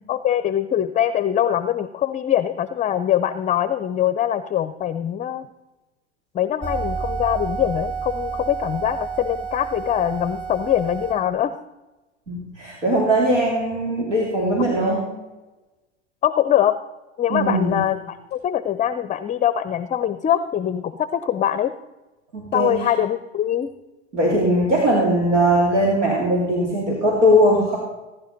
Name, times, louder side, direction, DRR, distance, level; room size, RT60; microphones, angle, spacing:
voice 1, 0.1-5.5 6.3-11.6 16.2-16.8 17.2-21.7 22.5-23.7, left 10 dB, 20° left, 13 dB, 0.5 m, -23 dB
sound 1, 6.6-11.1, right 5 dB, 20° right, 4.9 m, -30 dB
voice 2, 12.3-15.1 17.3-17.8 22.3-22.7 24.1-27.8, equal, 90° right, -4 dB, 3.1 m, -19 dB
19.5 x 10.5 x 4.0 m, 1.1 s
hypercardioid pair, 90°, 35 cm